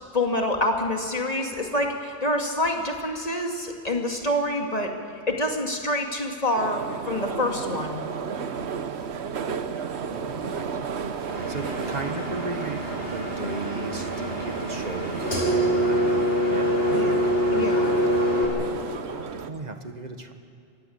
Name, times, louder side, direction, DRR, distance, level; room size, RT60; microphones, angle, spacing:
voice 1, 0.1-4.9 5.3-8.0 16.9-17.9, left 1 dB, 35° left, 2 dB, 2.5 m, -27 dB
sound 1, 6.6-19.5, right 6 dB, 85° right, 1.2 m, -33 dB
voice 2, 10.1-10.8 11.5-16.2 16.5-16.7 19.0-20.3, right 2 dB, 40° right, 6 dB, 1.7 m, -36 dB
Engine, 11.3-18.5, equal, 65° left, 6.0 m, -25 dB
26.5 x 16.0 x 8.8 m, 2.4 s
omnidirectional pair, 1.1 m